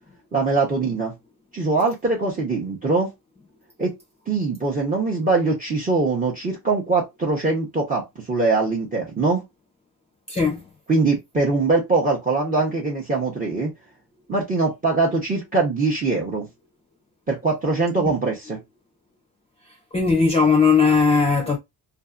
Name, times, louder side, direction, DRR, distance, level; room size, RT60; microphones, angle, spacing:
voice 1, 0.3-1.1 1.5-3.1 3.8-4.0 4.3-9.4 10.9-13.7 14.3-16.5 17.3-18.6, right 3 dB, 20° right, 0.7 m, -22 dB
voice 2, 10.3-10.6 18.1-18.2 19.9-21.6, left 5 dB, 15° left, 0.5 m, -18 dB
2.6 x 2.5 x 2.3 m
cardioid pair, 120°, 41 cm